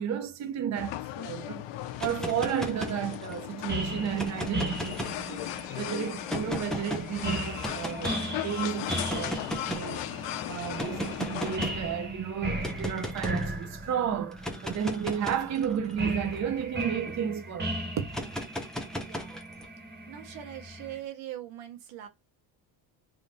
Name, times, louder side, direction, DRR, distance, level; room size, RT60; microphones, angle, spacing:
voice 1, 0.0-1.7 2.0-5.4 5.8-10.1 10.5-18.2, right 8 dB, 35° right, 0.7 m, -32 dB
sound 1, 0.8-11.6, left 14 dB, 70° left, 0.6 m, -37 dB
sound 2, 1.9-3.4 4.1-5.6 6.3-7.0 7.6-8.2 8.9-10.0 10.8-11.9 12.6-13.5 14.3-17.1 18.1-19.7, equal, ahead, 0.7 m, -36 dB
sound 3, 3.7-21.0, right 1 dB, 20° right, 1.4 m, -37 dB
voice 2, 19.0-19.4 20.1-22.1, right 12 dB, 85° right, 1.2 m, -41 dB
3.5 x 2.6 x 4.0 m
cardioid pair, 135°, 46 cm